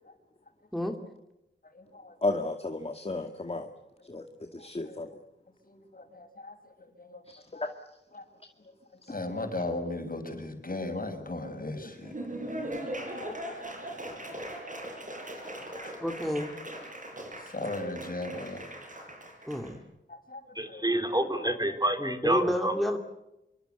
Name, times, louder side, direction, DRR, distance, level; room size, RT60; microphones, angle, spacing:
voice 1, 2.2-3.7 4.1-4.2 4.5-5.1 7.3-7.4, left 2 dB, 30° left, 5 dB, 2.1 m, -32 dB
voice 2, 5.9-6.5 7.0-7.1 7.5-7.6 8.1-8.2 9.1-12.1 13.2-13.6 15.8-15.9 17.5-18.6 20.3-20.4 20.6-20.8, left 2 dB, 45° left, 5 dB, 6.5 m, -36 dB
Laughter / Applause, 11.8-19.7, right 1 dB, 40° right, 7.4 m, -40 dB
voice 3, 16.0-16.5 19.5-19.8 22.0-23.0, equal, ahead, 4 dB, 2.7 m, -30 dB
voice 4, 20.5-22.7, right 1 dB, 20° right, 6 dB, 3.4 m, -28 dB
27.0 x 24.5 x 8.1 m, 0.92 s
wide cardioid pair, 80°, 20 cm